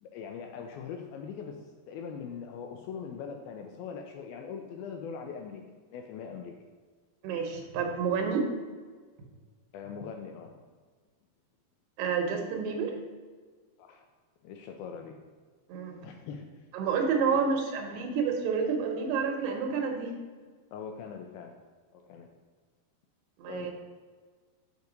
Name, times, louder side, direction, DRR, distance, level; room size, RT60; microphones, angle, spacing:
voice 1, 0.0-5.6 5.9-6.5 9.7-10.6 13.8-14.1 14.4-15.2 16.0-16.5 17.3-17.5 20.7-21.6 21.9-22.3 23.5-23.7, left 6 dB, 80° left, 4 dB, 2.3 m, -41 dB
voice 2, 7.2-8.5 12.0-12.9 15.7-16.0 16.7-20.1 23.4-23.7, right 5 dB, 85° right, 3 dB, 3.1 m, -29 dB
6.5 x 5.5 x 5.1 m, 1.5 s
omnidirectional pair, 4.6 m